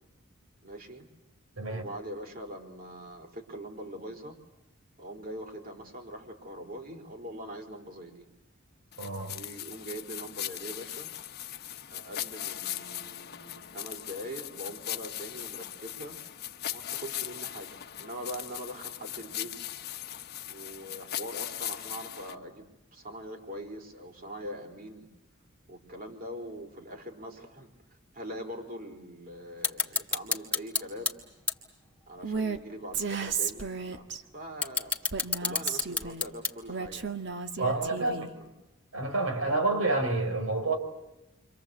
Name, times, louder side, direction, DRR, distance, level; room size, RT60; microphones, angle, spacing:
voice 1, 0.6-1.1 1.7-4.4 5.0-8.3 9.3-11.1 11.9-16.2 16.7-19.5 20.5-22.7 22.9-25.1 25.7-31.2 32.1-34.0 34.3-34.9 35.4-37.2 37.5-38.5 39.4-39.5, equal, 45° right, 3 dB, 4.9 m, -42 dB
voice 2, 1.6-1.9 9.0-9.4 37.6-38.3 38.9-40.8, right 2 dB, 90° right, 5 dB, 5.1 m, -28 dB
sound 1, 8.9-22.3, left 12 dB, 50° left, 1.1 m, -39 dB
sound 2, 29.6-31.1 31.5-31.6 32.2-32.3 33.6-33.7 34.4-36.8, left 4 dB, 5° left, 2.0 m, -29 dB
Female speech woman speaking, 32.2-32.6 32.9-34.2 35.1-36.2 36.7-38.3, right 5 dB, 60° right, 1.7 m, -33 dB
29.0 x 25.0 x 8.1 m, 0.98 s
head